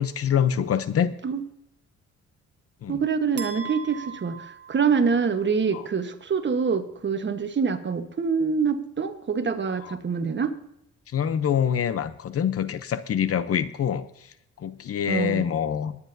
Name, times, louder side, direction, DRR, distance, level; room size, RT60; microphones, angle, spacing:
voice 1, 0.0-1.1 2.8-3.0 5.7-5.8 11.1-16.0, left 8 dB, 50° left, 13 dB, 0.7 m, -25 dB
voice 2, 2.9-10.5 15.1-15.5, right 5 dB, 40° right, 8 dB, 1.2 m, -25 dB
sound 1, 3.4-5.5, right 7 dB, 55° right, 1.7 m, -39 dB
20.0 x 9.7 x 2.7 m, 0.79 s
cardioid pair, 90°, 30 cm